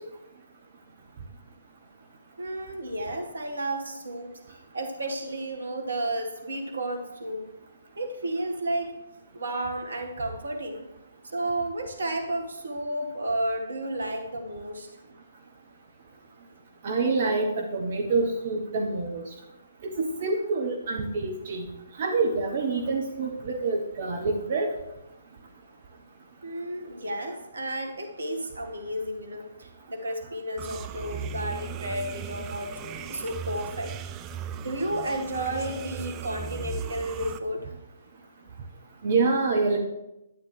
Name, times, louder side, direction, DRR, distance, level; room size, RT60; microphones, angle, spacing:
voice 1, 2.4-7.5 8.0-8.9 9.3-10.9 11.3-14.9 26.4-33.9 34.6-37.7, right 1 dB, 70° right, 5 dB, 1.6 m, -32 dB
voice 2, 16.8-19.2 19.8-21.7 22.0-24.7 39.0-39.8, right 3 dB, 45° right, 2 dB, 1.1 m, -26 dB
sound 1, 30.6-37.4, right 7 dB, 20° right, 0.5 m, -37 dB
12.0 x 9.3 x 3.3 m, 0.92 s
figure-of-eight pair, 130°, 0 cm